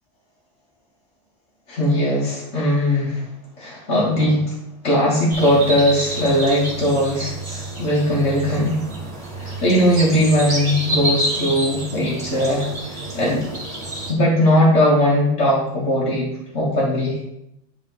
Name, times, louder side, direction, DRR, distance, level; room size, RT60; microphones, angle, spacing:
voice 1, 1.7-3.2 3.6-4.5 4.8-8.8 9.4-12.7 12.9-13.4 14.1-17.3, equal, 85° left, -6 dB, 1.9 m, -19 dB
sound 1, 5.3-14.1, right 1 dB, 30° right, 1.6 m, -29 dB
10.5 x 3.9 x 3.9 m, 0.81 s
omnidirectional pair, 1.2 m